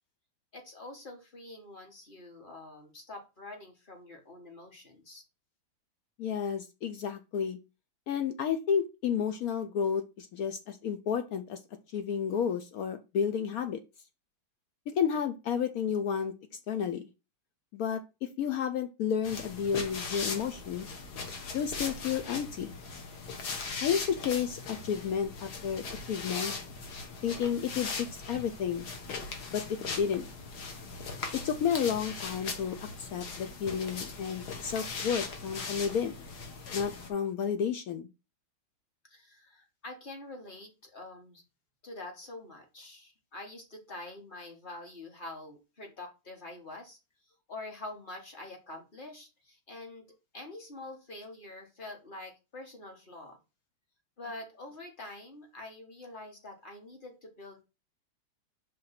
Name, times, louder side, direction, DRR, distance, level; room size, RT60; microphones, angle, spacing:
voice 1, 0.5-5.2 39.1-41.4 41.8-47.0 47.3-53.4 54.2-57.7, left 2 dB, 30° left, 2 dB, 1.3 m, -46 dB
voice 2, 6.2-7.6 8.1-11.6 11.9-13.8 14.9-16.3 16.7-17.0 17.7-20.9 21.5-22.7 23.8-26.5 27.2-28.9 29.5-30.3 31.3-36.1 36.7-38.1, left 7 dB, 75° left, 9 dB, 0.8 m, -31 dB
sound 1, 19.2-37.1, left 4 dB, 55° left, 1.6 m, -39 dB
5.6 x 3.4 x 5.7 m, 0.28 s
omnidirectional pair, 2.2 m